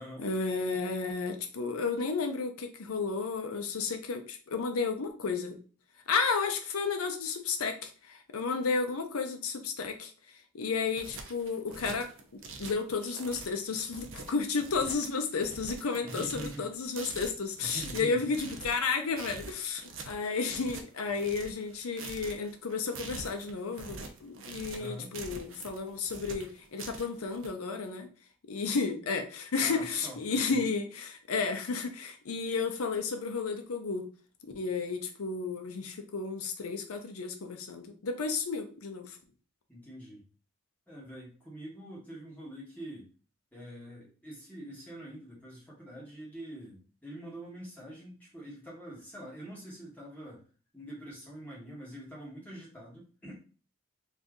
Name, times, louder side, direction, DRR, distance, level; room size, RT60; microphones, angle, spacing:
voice 1, 0.2-5.6 6.1-28.1 28.5-34.1 34.4-39.2, left 4 dB, 90° left, 6 dB, 0.6 m, -32 dB
sound 1, 10.7-27.5, right 3 dB, 70° right, 0.6 m, -45 dB
voice 2, 16.0-16.7 17.6-18.3 24.7-25.1 29.6-30.7 39.7-40.2 40.9-43.1 43.5-50.4 50.7-53.4, right 1 dB, 5° left, -6 dB, 1.2 m, -45 dB
2.7 x 2.5 x 3.5 m, 0.38 s
head